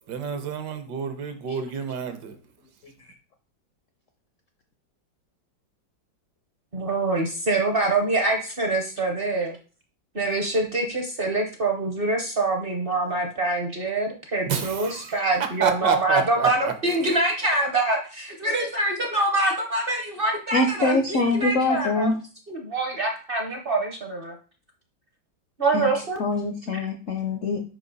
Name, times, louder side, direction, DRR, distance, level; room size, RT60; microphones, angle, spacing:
voice 1, 0.1-2.4 14.5-16.7, right 6 dB, 70° right, 8 dB, 1.3 m, -29 dB
voice 2, 6.7-9.5 10.1-22.1 22.5-24.3 25.6-26.2, right 2 dB, 50° right, 2 dB, 0.7 m, -25 dB
voice 3, 20.5-22.2 25.7-25.9 26.2-27.6, left 2 dB, 70° left, 5 dB, 0.7 m, -24 dB
5.4 x 4.8 x 3.9 m, 0.37 s
omnidirectional pair, 2.1 m